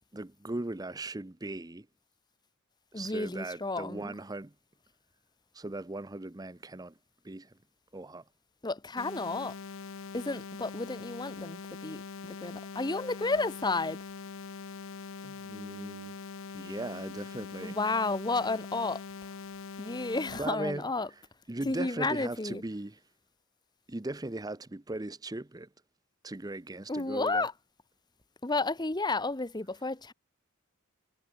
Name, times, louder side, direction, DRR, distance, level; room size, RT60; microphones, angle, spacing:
voice 1, 0.1-1.9 2.9-4.5 5.5-6.9 7.2-7.5 7.9-8.2 15.2-16.1 16.5-17.8 20.3-20.9 21.5-23.0 23.9-25.7 26.2-27.5, right 2 dB, 20° right, 0.7 m, -38 dB
voice 2, 2.9-4.1 8.6-9.6 10.1-14.0 17.6-19.0 19.8-21.1 21.6-22.6 26.9-27.5 28.4-30.1, left 3 dB, 20° left, 1.0 m, -32 dB
sound 1, 9.0-20.4, left 4 dB, 70° left, 0.7 m, -43 dB
head